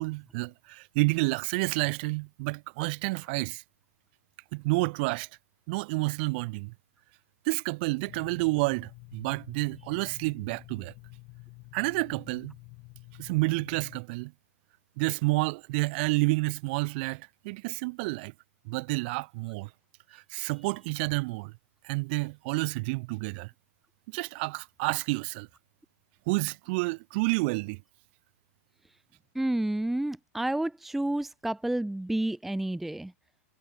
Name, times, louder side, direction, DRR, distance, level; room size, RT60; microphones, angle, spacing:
voice 1, 0.0-3.6 4.5-5.3 5.7-6.7 7.4-10.9 11.7-12.6 13.2-14.3 15.0-18.3 18.6-19.7 20.1-21.5 21.8-23.5 24.1-25.5 26.3-27.8, right 27 dB, 40° right, 1.5 m, -29 dB
sound 1, 8.1-14.0, left 30 dB, 35° left, 6.9 m, -49 dB
voice 2, 29.3-33.1, right 1 dB, ahead, 0.7 m, -30 dB
hypercardioid pair, 150°, 8 cm